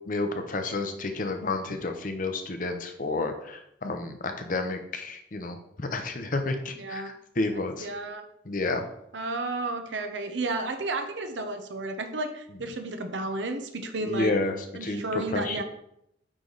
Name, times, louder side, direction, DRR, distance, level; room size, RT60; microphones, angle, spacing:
voice 1, 0.1-7.9 8.4-8.9 14.0-15.6, left 2 dB, 50° left, 6 dB, 0.7 m, -30 dB
voice 2, 6.7-7.1 7.8-8.2 9.1-14.3 14.7-15.6, right 2 dB, 90° right, 7 dB, 0.9 m, -32 dB
8.6 x 3.3 x 4.0 m, 0.76 s
head